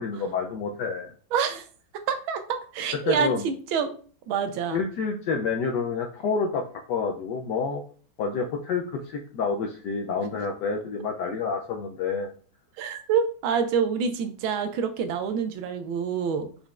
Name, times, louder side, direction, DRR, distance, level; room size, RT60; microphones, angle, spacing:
voice 1, 0.0-1.1 3.0-3.5 4.7-7.8 8.2-12.3, left 5 dB, 75° left, 3 dB, 1.0 m, -28 dB
voice 2, 1.3-1.7 2.1-3.9 4.3-4.8 12.8-16.5, right 6 dB, 80° right, 8 dB, 1.4 m, -27 dB
5.4 x 3.9 x 2.4 m, 0.42 s
omnidirectional pair, 2.3 m